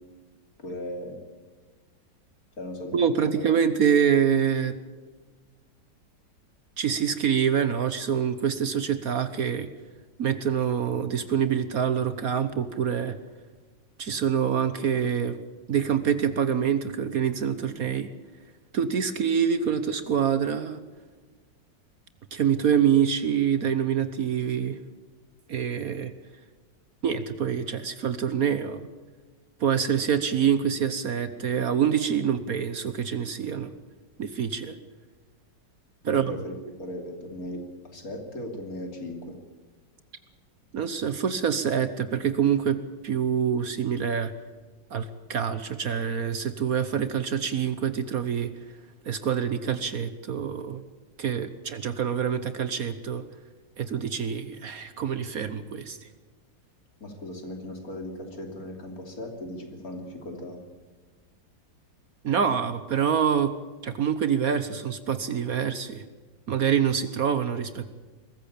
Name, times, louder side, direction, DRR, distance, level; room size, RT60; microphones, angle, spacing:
voice 1, 0.6-1.2 2.6-3.6 36.1-36.5 36.8-39.4 57.0-60.6, left 1 dB, 50° left, 4 dB, 3.5 m, -37 dB
voice 2, 2.9-4.8 6.8-9.7 10.2-13.2 14.0-15.4 15.7-18.1 18.7-20.8 22.3-24.8 25.5-26.1 27.0-28.9 29.6-33.7 34.2-34.7 36.0-36.3 40.7-44.3 44.9-48.5 49.1-50.8 51.2-53.2 53.8-56.1 62.2-63.5 63.8-66.0 66.5-67.9, right 8 dB, 55° right, 12 dB, 1.4 m, -26 dB
22.0 x 14.5 x 8.6 m, 1.4 s
omnidirectional pair, 1.9 m